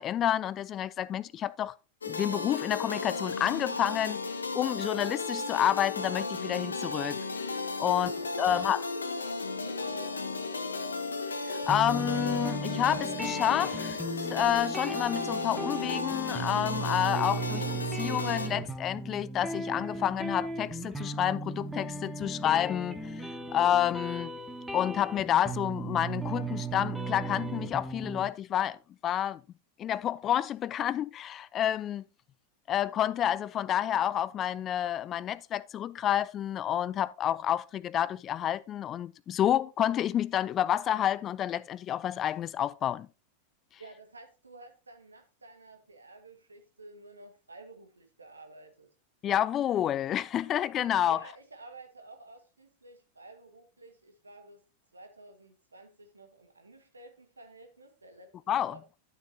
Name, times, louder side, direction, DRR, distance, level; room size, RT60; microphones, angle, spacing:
voice 1, 0.0-1.7 2.1-4.2 4.5-7.2 7.8-8.1 8.4-8.8 11.5-17.7 17.9-24.3 24.7-28.8 29.0-29.4 29.8-32.0 32.7-43.1 49.2-51.2 58.5-58.8, left 11 dB, 30° left, 0.5 m, -29 dB
sound 1, 2.0-18.5, left 3 dB, 75° left, 0.9 m, -35 dB
voice 2, 7.8-10.7 43.8-48.9 51.1-54.6 54.9-58.8, right 2 dB, 80° right, 1.6 m, -51 dB
sound 2, 11.7-28.3, right 3 dB, 5° right, 1.2 m, -36 dB
12.0 x 7.0 x 2.8 m
figure-of-eight pair, 90°, 0 cm